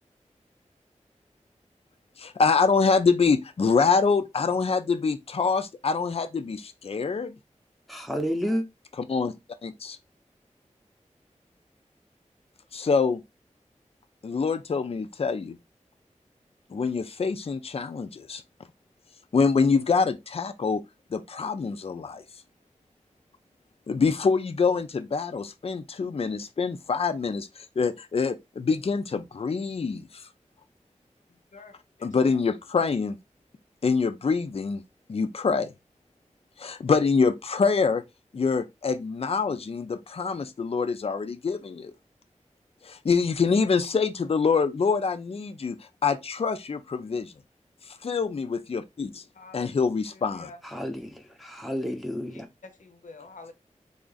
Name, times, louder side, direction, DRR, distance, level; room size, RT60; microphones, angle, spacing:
voice 1, 2.2-7.4 9.1-9.3 9.6-10.0 12.7-13.2 14.2-15.6 16.7-18.4 19.3-20.8 21.1-22.2 23.9-30.3 32.0-33.2 33.8-34.8 35.1-35.7 36.6-38.0 38.3-41.9 42.8-45.8 46.0-47.3 48.0-49.2 49.5-50.5, left 5 dB, 50° left, 0.4 m, -25 dB
voice 2, 7.9-8.6 50.6-52.5, equal, ahead, 0.7 m, -30 dB
voice 3, 31.5-32.4 49.3-49.7 50.1-50.6 52.3-53.5, left 3 dB, 85° left, 0.7 m, -48 dB
3.5 x 2.5 x 3.9 m
wide cardioid pair, 80°, 13 cm